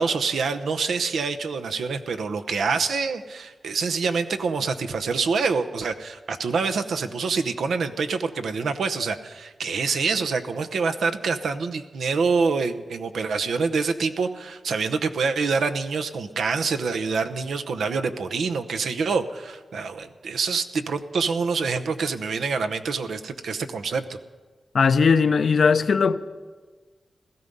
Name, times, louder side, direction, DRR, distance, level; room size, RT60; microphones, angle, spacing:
voice 1, 0.0-24.2, right 4 dB, 90° right, 0.8 m, -26 dB
voice 2, 24.7-26.2, left 5 dB, 75° left, 0.6 m, -18 dB
16.5 x 13.5 x 5.4 m
cardioid pair, 60°, 0 cm